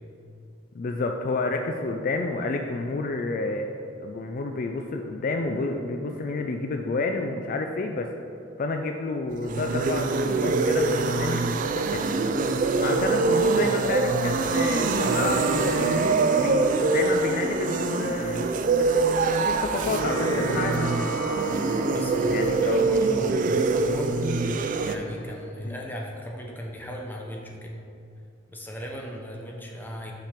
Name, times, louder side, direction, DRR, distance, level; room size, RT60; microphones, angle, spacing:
voice 1, 0.7-3.7 4.0-8.1 8.6-12.1 12.8-16.0 16.3-20.9 22.3-22.9 25.6-25.8, left 3 dB, 45° left, 4 dB, 0.3 m, -30 dB
zombies ambient (immolation), 9.3-25.0, right 3 dB, 40° right, 0.4 m, -24 dB
sound 1, 14.5-25.4, right 3 dB, 85° left, 1.0 m, -35 dB
voice 2, 21.9-24.1 24.8-27.7 28.5-30.1, equal, 10° left, -1 dB, 0.8 m, -37 dB
5.7 x 5.2 x 5.8 m, 2.6 s
head